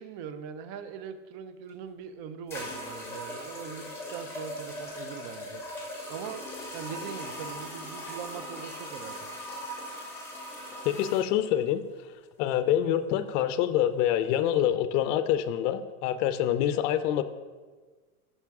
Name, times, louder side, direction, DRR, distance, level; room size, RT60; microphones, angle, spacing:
voice 1, 0.0-5.6 6.1-6.4 6.7-9.4, right 7 dB, 40° right, 11 dB, 0.4 m, -41 dB
sound 1, 1.7-1.8 2.5-11.3, equal, 5° left, 1.4 m, -39 dB
voice 2, 10.8-11.8 12.4-17.2, left 11 dB, 55° left, 11 dB, 0.5 m, -26 dB
5.8 x 5.4 x 3.5 m, 1.4 s
supercardioid pair, 120°, 44 cm